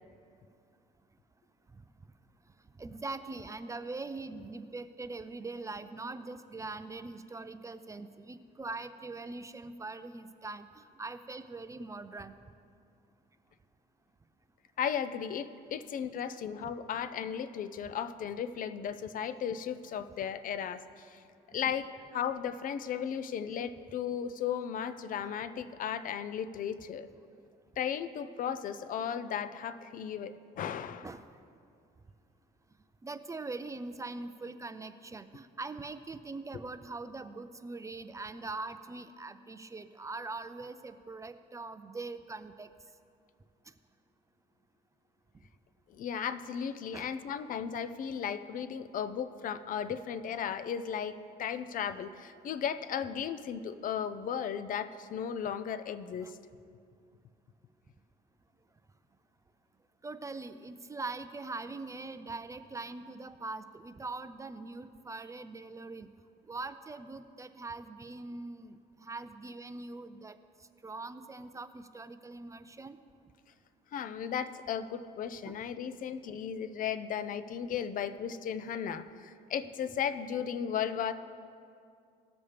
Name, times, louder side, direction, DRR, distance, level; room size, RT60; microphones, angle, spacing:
voice 1, 2.8-12.3 21.7-21.9 31.0-31.3 33.0-42.7 46.9-47.2 56.2-56.3 60.0-66.1 66.5-70.4 70.8-73.0 75.5-75.6, right 3 dB, 20° right, 11 dB, 0.4 m, -42 dB
voice 2, 14.8-21.2 21.5-27.1 27.8-31.1 45.9-56.4 73.9-81.1, left 8 dB, 55° left, 13 dB, 0.6 m, -35 dB
18.5 x 7.2 x 3.3 m, 2.4 s
cardioid pair, 110°, 17 cm